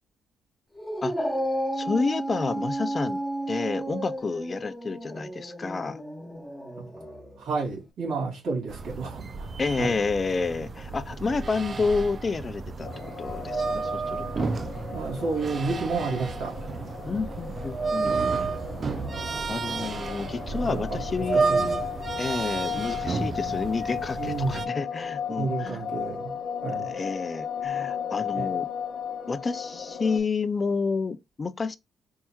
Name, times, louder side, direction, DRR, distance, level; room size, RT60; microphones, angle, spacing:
Dog, 0.8-7.4, right 1 dB, 5° left, 1.1 m, -32 dB
voice 1, 1.0-1.4 1.8-3.2 3.5-6.0 9.6-12.9 13.2-14.5 17.1-18.5 19.5-21.8 22.2-25.8 26.9-28.7 29.3-31.8, left 4 dB, 35° left, 0.4 m, -30 dB
voice 2, 7.4-9.5 9.8-9.9 14.9-16.6 20.5-21.0 21.3-21.6 24.2-24.7 25.4-26.3 26.6-26.9 28.3-28.5, right 4 dB, 80° right, 2.5 m, -30 dB
sound 1, 8.7-24.7, right 4 dB, 40° right, 0.4 m, -31 dB
sound 2, 12.8-30.2, left 7 dB, 55° left, 0.8 m, -35 dB
4.5 x 2.9 x 2.2 m
cardioid pair, 90°, 0 cm